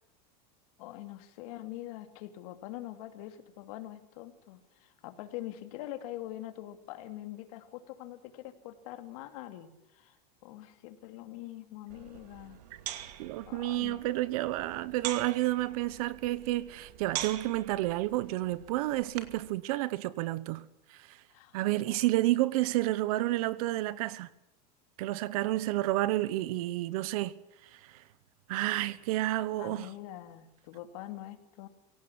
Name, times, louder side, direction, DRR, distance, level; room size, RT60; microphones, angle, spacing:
voice 1, 0.8-10.2 10.4-12.6 13.5-14.0 21.3-21.6 21.9-22.0 29.6-31.7, left 14 dB, 60° left, 2.8 m, -44 dB
sound 1, 11.9-19.5, right 12 dB, 75° right, 2.5 m, -43 dB
voice 2, 13.2-21.2 21.5-24.3 25.0-27.4 27.7-28.0 28.5-29.9, right 16 dB, 60° right, 1.2 m, -30 dB
23.5 x 17.5 x 9.9 m
supercardioid pair, 165°, 21 cm